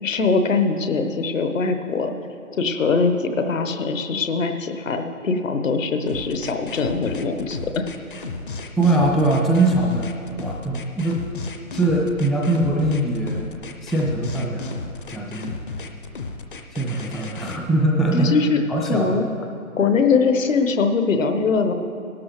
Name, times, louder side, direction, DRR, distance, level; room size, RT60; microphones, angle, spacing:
voice 1, 0.0-2.1 2.6-7.8 18.1-18.6 18.8-19.2 19.8-21.7, left 4 dB, 65° left, 6 dB, 1.1 m, -22 dB
sound 1, 6.1-17.6, left 4 dB, 40° left, 0.6 m, -34 dB
voice 2, 8.8-10.1 10.4-11.2 11.7-14.7 15.1-15.6 16.7-18.3 18.7-19.2, right 2 dB, ahead, -2 dB, 0.3 m, -22 dB
17.0 x 12.5 x 3.1 m, 2.5 s
hypercardioid pair, 160°, 42 cm